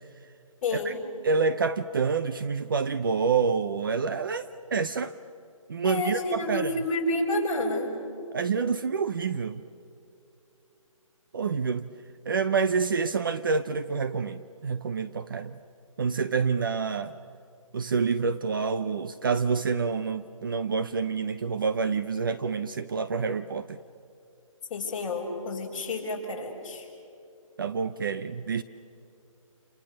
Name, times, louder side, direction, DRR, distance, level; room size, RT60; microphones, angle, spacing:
voice 1, 0.6-1.0 5.8-7.9 24.7-26.9, left 2 dB, 20° left, -5 dB, 5.6 m, -30 dB
voice 2, 1.2-5.1 5.7-6.7 8.3-9.6 11.3-11.9 12.3-15.6 16.0-17.1 17.7-23.8 27.6-28.6, right 5 dB, 40° right, 12 dB, 0.7 m, -27 dB
29.5 x 29.0 x 6.6 m, 2.7 s
hypercardioid pair, 170°, 18 cm